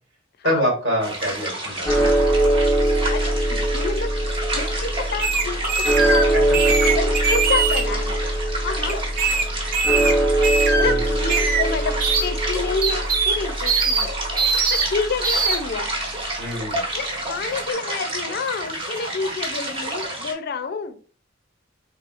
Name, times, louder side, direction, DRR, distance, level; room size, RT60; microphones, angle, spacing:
voice 1, 0.4-2.1 5.8-5.9 6.6-6.9 10.8-11.2 16.4-16.8, equal, 75° right, 1.8 m, -26 dB
sound 1, 1.0-20.3, right 1 dB, 30° right, 1.1 m, -30 dB
sound 2, 1.9-16.1, right 1 dB, 10° left, 0.8 m, -23 dB
voice 2, 3.1-4.1 4.5-6.5 6.9-8.2 8.6-9.0 9.9-10.2 10.8-14.1 14.7-15.9 16.9-21.0, left 4 dB, 55° left, 0.4 m, -29 dB
sound 3, 5.2-6.2 6.5-7.8 8.9-9.4 9.7-10.1 10.4-10.9 11.3-11.6 12.0-12.3 12.8-13.4 13.6-14.0 14.4-14.9 15.2-15.6, right 4 dB, 50° right, 0.7 m, -21 dB
3.6 x 3.5 x 2.5 m
head